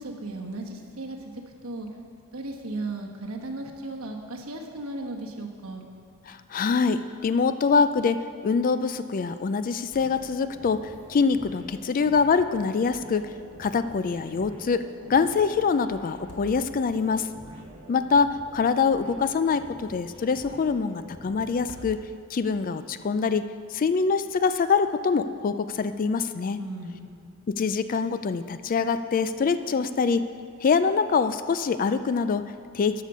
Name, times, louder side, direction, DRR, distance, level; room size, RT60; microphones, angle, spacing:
voice 1, 0.0-1.3 1.6-1.9 2.3-5.8 17.7-17.9 26.6-27.3, right 2 dB, 70° right, 1 dB, 1.2 m, -36 dB
voice 2, 6.3-13.3 13.6-17.3 17.9-22.0 22.3-23.5 23.7-26.6 27.5-30.2 30.6-33.0, left 5 dB, 40° left, 12 dB, 0.3 m, -24 dB
sound 1, 9.9-22.1, right 1 dB, 25° right, 2.4 m, -47 dB
sound 2, 13.3-13.8 14.1-14.2 16.0-17.1 18.8-19.7 21.5-22.5, left 1 dB, 90° left, 1.5 m, -48 dB
12.5 x 6.8 x 5.5 m, 2.3 s
head